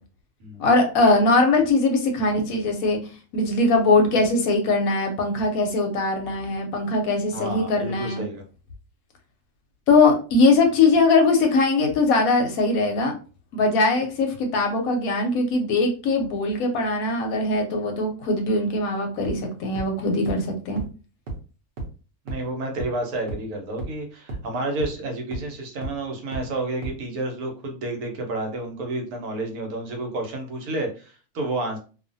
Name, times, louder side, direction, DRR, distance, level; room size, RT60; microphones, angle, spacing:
voice 1, 0.6-3.0 3.3-8.3 9.9-13.1 13.5-20.8, left 3 dB, 70° left, 3 dB, 1.0 m, -21 dB
voice 2, 7.3-8.4 22.2-31.8, right 2 dB, 75° right, 2 dB, 1.2 m, -30 dB
sound 1, 19.2-19.3 19.7-19.8 20.3-20.4 20.8-20.9 21.3-21.4 21.8-21.9 22.3-22.4 22.8-22.9 23.3-23.4 23.8-23.9 24.3-24.4 24.8-24.9 25.3-25.4 25.8-25.9 26.3-26.4 26.8-26.9, right 3 dB, 50° right, 0.7 m, -31 dB
2.5 x 2.4 x 2.6 m, 0.36 s
omnidirectional pair, 1.6 m